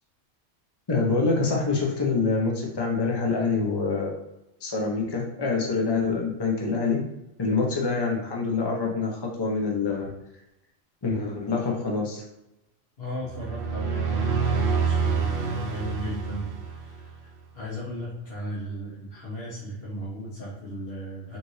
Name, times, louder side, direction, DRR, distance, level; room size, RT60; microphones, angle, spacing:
voice 1, 0.9-4.2 4.6-7.0 7.4-10.1 11.0-12.2, left 4 dB, 25° left, -2 dB, 0.8 m, -26 dB
voice 2, 13.0-21.4, equal, 55° left, -8 dB, 1.4 m, -36 dB
sound 1, 13.3-17.1, right 5 dB, 55° right, 0.8 m, -27 dB
5.2 x 2.6 x 3.2 m, 0.91 s
omnidirectional pair, 1.3 m